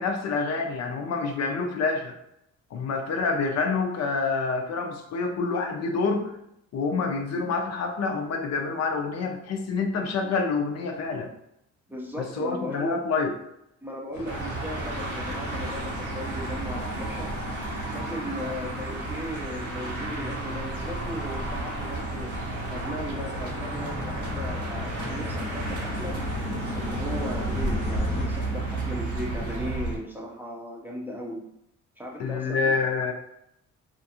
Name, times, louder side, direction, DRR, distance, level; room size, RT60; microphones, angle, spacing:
voice 1, 0.0-2.2 2.7-6.3 6.7-11.3 12.2-13.3 32.2-33.1, left 4 dB, 60° left, 3 dB, 0.5 m, -27 dB
voice 2, 11.9-13.0 13.8-17.3 17.9-22.3 22.7-26.2 26.8-31.4 32.0-32.7, equal, 5° right, -2 dB, 0.5 m, -37 dB
sound 1, 14.1-28.3, left 4 dB, 80° left, 0.8 m, -40 dB
sound 2, 14.3-30.0, right 2 dB, 80° right, 0.8 m, -32 dB
2.5 x 2.4 x 2.7 m, 0.78 s
cardioid pair, 90°, 30 cm